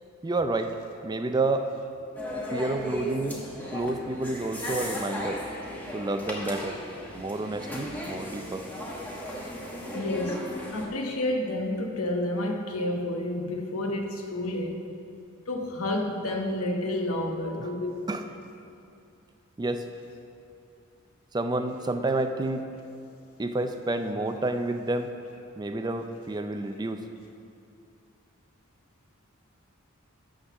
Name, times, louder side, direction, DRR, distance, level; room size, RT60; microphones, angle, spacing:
voice 1, 0.2-0.7 1.0-1.7 2.5-3.4 3.7-5.4 5.9-6.8 7.1-8.7 17.6-17.7 18.1-18.2 19.6-19.8 21.3-22.6 23.4-25.1 25.6-27.0, right 2 dB, 20° right, 0.4 m, -29 dB
sound 1, 2.1-10.9, equal, 10° left, 1.1 m, -36 dB
voice 2, 9.9-14.9 15.5-17.9 25.5-25.6, left 1 dB, 85° left, 1.0 m, -30 dB
11.5 x 3.9 x 7.0 m
head